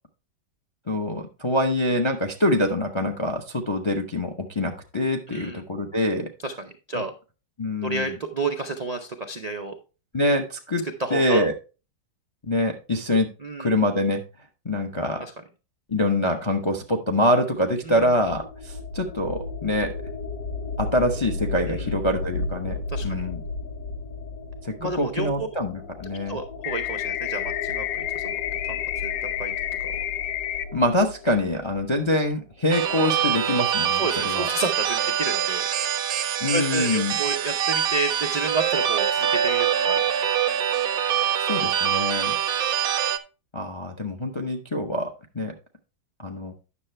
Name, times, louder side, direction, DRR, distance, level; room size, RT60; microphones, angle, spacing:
voice 1, 0.9-6.3 6.9-7.0 7.6-8.1 10.1-10.8 11.1-11.5 12.5-13.3 13.6-14.2 14.6-15.2 15.9-19.9 20.8-23.4 24.6-26.4 30.7-34.5 36.4-37.1 41.4-42.3 43.5-45.1 45.3-45.6 46.2-46.5, left 1 dB, 40° left, 4 dB, 0.4 m, -25 dB
voice 2, 5.3-5.6 6.4-7.1 7.8-9.8 10.8-11.4 13.4-13.7 15.2-15.3 17.8-18.1 21.7-21.9 22.9-23.2 24.8-25.5 26.3-28.4 28.7-29.5 29.8-29.9 34.0-35.7 36.5-40.0 42.0-42.2, right 2 dB, 90° right, 4 dB, 0.3 m, -31 dB
sound 1, 17.8-32.4, left 3 dB, 60° left, 1.3 m, -35 dB
sound 2, 26.6-30.6, left 12 dB, 80° left, 1.2 m, -29 dB
sound 3, 32.7-43.2, right 9 dB, 65° right, 1.0 m, -24 dB
9.6 x 6.6 x 3.2 m, 0.33 s
omnidirectional pair, 1.8 m